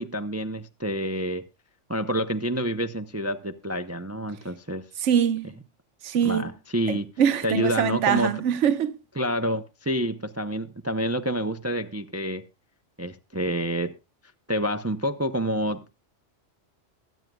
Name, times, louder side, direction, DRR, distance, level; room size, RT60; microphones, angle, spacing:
voice 1, 0.0-1.5 1.9-4.9 6.2-7.1 7.4-8.4 9.2-12.4 13.0-13.9 14.5-16.1, right 1 dB, 15° right, 0.6 m, -28 dB
voice 2, 5.0-5.5 6.0-6.5 6.9-9.0, right 8 dB, 75° right, 1.2 m, -23 dB
23.0 x 9.2 x 2.3 m
omnidirectional pair, 1.2 m